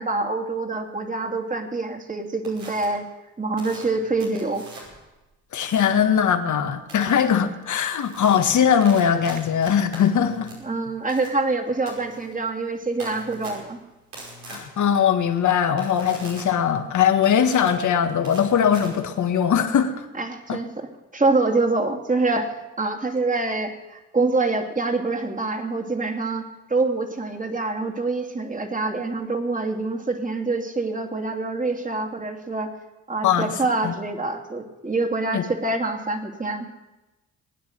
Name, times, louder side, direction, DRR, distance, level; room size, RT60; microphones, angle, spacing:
voice 1, 0.0-3.0 3.4-4.6 10.6-13.8 20.2-32.7 33.1-36.7, right 3 dB, 25° right, 3 dB, 2.7 m, -25 dB
sound 1, 2.4-2.9 3.6-5.1 5.6-6.1 6.9-7.2 7.6-19.5, right 2 dB, 90° right, 5.5 m, -42 dB
voice 2, 5.5-10.5 14.5-20.0 20.5-20.6 33.2-33.5 33.8-33.9 35.3-35.4, left 8 dB, 65° left, 7 dB, 1.6 m, -20 dB
20.0 x 9.7 x 6.6 m, 1.0 s
supercardioid pair, 55°, 32 cm